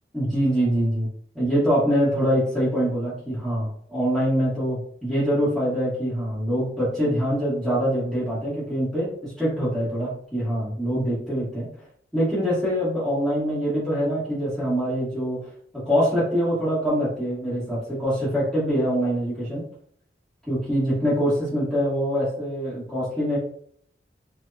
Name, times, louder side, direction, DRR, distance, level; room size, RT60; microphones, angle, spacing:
voice 1, 0.1-1.1 1.3-11.7 12.1-15.5 15.7-19.6 20.5-23.4, equal, ahead, -11 dB, 1.2 m, -24 dB
4.5 x 2.0 x 2.7 m, 0.62 s
head